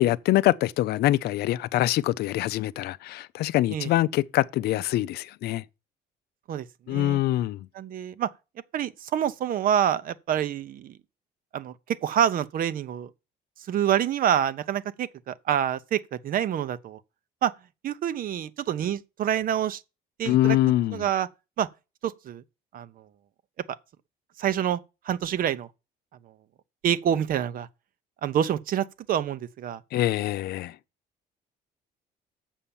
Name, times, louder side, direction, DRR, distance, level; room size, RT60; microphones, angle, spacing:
voice 1, 0.0-5.6 6.9-7.7 20.2-21.0 29.9-30.7, left 15 dB, 70° left, 0.5 m, -24 dB
voice 2, 6.5-7.2 7.7-8.3 8.7-10.9 11.5-13.1 13.7-17.0 17.4-17.5 17.8-19.8 20.2-20.6 20.9-21.3 21.6-21.7 22.0-22.4 22.7-22.9 24.4-24.8 25.1-25.7 26.8-27.7 28.2-29.8, right 10 dB, 55° right, 0.8 m, -27 dB
7.2 x 5.6 x 7.1 m
cardioid pair, 110°, 17 cm